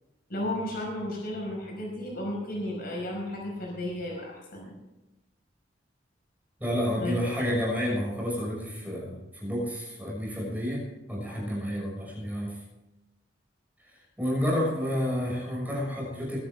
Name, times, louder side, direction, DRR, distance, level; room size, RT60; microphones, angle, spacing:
voice 1, 0.3-4.7 7.0-7.1, left 1 dB, 55° left, -1 dB, 5.4 m, -33 dB
voice 2, 6.6-10.8 11.1-12.6 14.2-16.4, equal, 10° right, -4 dB, 6.3 m, -30 dB
21.0 x 12.5 x 3.6 m, 1.0 s
head